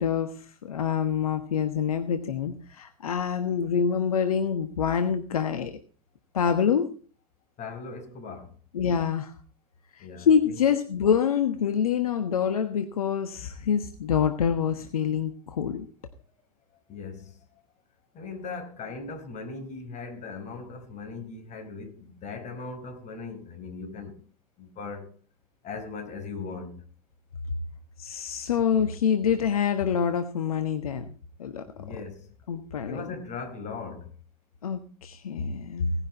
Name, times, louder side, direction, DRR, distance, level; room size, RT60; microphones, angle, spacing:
voice 1, 0.0-5.7 6.3-6.9 8.7-9.3 9.9-15.9 28.0-31.6 31.9-32.0 32.5-33.1 34.6-35.9, left 7 dB, 80° left, 1.3 m, -26 dB
voice 2, 7.6-8.6 10.0-10.6 16.9-17.6 18.1-24.2 24.6-25.1 25.6-26.8 31.6-32.3 32.9-34.1, left 4 dB, 40° left, 4.9 m, -39 dB
18.0 x 10.5 x 4.1 m
hypercardioid pair, 80°, 18 cm